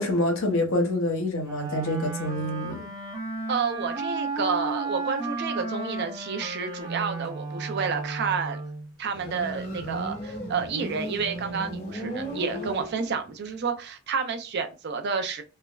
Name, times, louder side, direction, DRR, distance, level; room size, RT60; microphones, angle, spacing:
voice 1, 0.0-2.9, left 1 dB, 70° left, 0.8 m, -26 dB
Wind instrument woodwind instrument, 1.4-8.9, right 3 dB, 20° right, 0.7 m, -33 dB
voice 2, 3.5-8.6 9.0-15.4, right 5 dB, 50° right, 0.5 m, -30 dB
Motorcycle, 9.1-13.4, right 1 dB, 45° left, 1.2 m, -35 dB
3.3 x 2.1 x 2.3 m
head